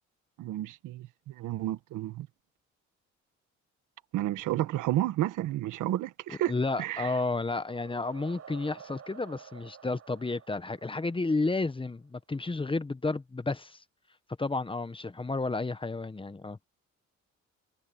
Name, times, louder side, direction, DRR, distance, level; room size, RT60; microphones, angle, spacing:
voice 1, 0.4-1.0 1.4-2.3 4.1-6.5 6.8-7.1, right 14 dB, 90° right, 1.4 m, -31 dB
voice 2, 6.3-13.8 14.4-16.6, left 3 dB, 15° left, 1.1 m, -32 dB
sound 1, 7.3-11.8, right 8 dB, 55° right, 4.4 m, -51 dB
cardioid pair, 90°, 30 cm